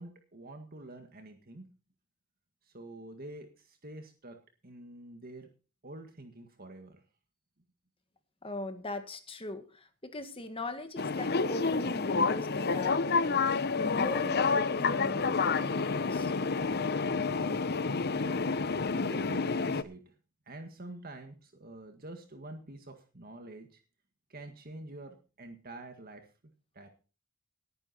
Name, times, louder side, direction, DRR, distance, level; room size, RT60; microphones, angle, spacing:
voice 1, 0.0-1.6 2.7-4.4 4.6-5.5 5.8-7.0 18.1-18.6 19.0-20.1 20.5-23.8 24.3-26.2 26.7-26.9, right 2 dB, 45° right, 6 dB, 1.8 m, -47 dB
voice 2, 8.4-16.3, left 1 dB, 25° left, 9 dB, 1.8 m, -40 dB
sound 1, 11.0-19.8, left 4 dB, 50° left, 0.8 m, -29 dB
19.0 x 9.7 x 4.3 m, 0.35 s
head